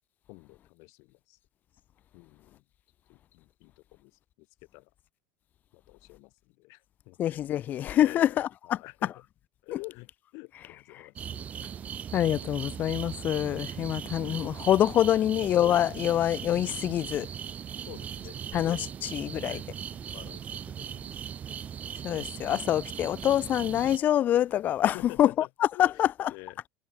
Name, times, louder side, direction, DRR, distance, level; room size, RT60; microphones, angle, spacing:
voice 1, 0.3-1.4 2.1-2.6 3.1-4.5 4.7-4.9 5.7-7.2 8.0-9.2 9.6-11.7 15.1-15.2 17.9-18.9 19.5-19.7 20.0-21.7 24.9-25.5 25.7-26.6, left 28 dB, 50° left, 4.3 m, -48 dB
voice 2, 7.2-8.8 12.1-17.3 18.5-19.6 22.0-25.3 25.8-26.1, left 11 dB, 25° left, 0.4 m, -25 dB
sound 1, 11.2-24.0, right 8 dB, 20° right, 1.4 m, -39 dB
cardioid pair, 180°, 7 cm